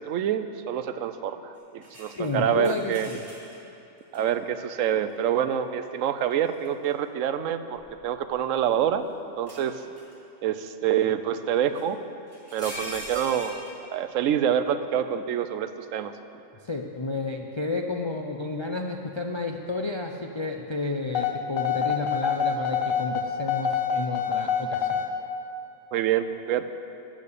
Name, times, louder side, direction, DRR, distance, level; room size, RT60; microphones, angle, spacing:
voice 1, 0.0-3.1 4.1-9.8 10.4-12.0 12.5-13.6 13.9-16.2 25.9-26.6, right 9 dB, 75° right, 11 dB, 1.0 m, -27 dB
sound 1, 1.8-3.6 4.1-4.2 6.3-6.9 7.7-8.8 9.5-10.2 11.7-11.8 12.3-13.7, left 1 dB, 10° left, 2.9 m, -41 dB
voice 2, 2.2-3.2 16.6-25.0, left 3 dB, 45° left, 2 dB, 0.3 m, -31 dB
sound 2, 21.1-25.1, left 7 dB, 90° left, 1.2 m, -26 dB
13.5 x 7.6 x 6.7 m, 2.7 s
omnidirectional pair, 1.4 m